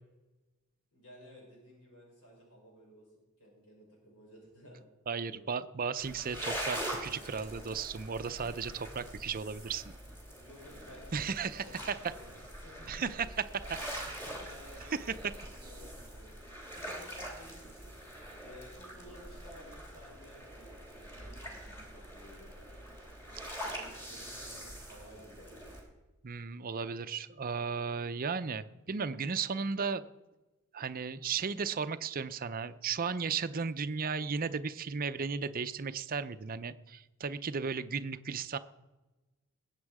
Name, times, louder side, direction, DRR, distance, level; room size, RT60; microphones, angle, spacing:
voice 1, 0.9-3.1 3.4-4.9 5.2-5.6 10.3-13.1 13.4-17.9 18.3-22.5 24.0-25.7, equal, 70° left, -1 dB, 5.5 m, -55 dB
voice 2, 5.1-9.9 11.1-12.0 12.9-13.5 26.2-30.0 30.7-38.6, right 5 dB, 40° right, 12 dB, 0.6 m, -35 dB
sound 1, 6.0-25.8, right 1 dB, 10° left, 3.1 m, -44 dB
20.5 x 8.3 x 4.9 m, 1.1 s
head